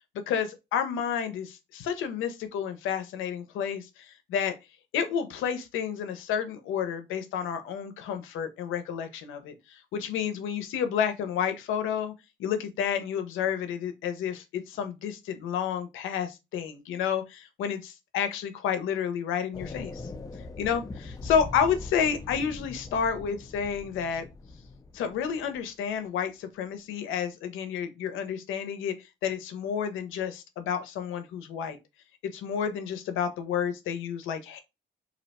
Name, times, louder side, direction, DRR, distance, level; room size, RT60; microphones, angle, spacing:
voice 1, 0.3-4.5 4.9-12.1 12.4-20.0 20.6-24.3 24.9-29.0 29.2-31.8 32.2-34.6, left 7 dB, 90° left, 0.6 m, -30 dB
sound 1, 19.5-25.7, left 3 dB, 20° left, 0.4 m, -41 dB
2.7 x 2.1 x 4.0 m
cardioid pair, 90°, 20 cm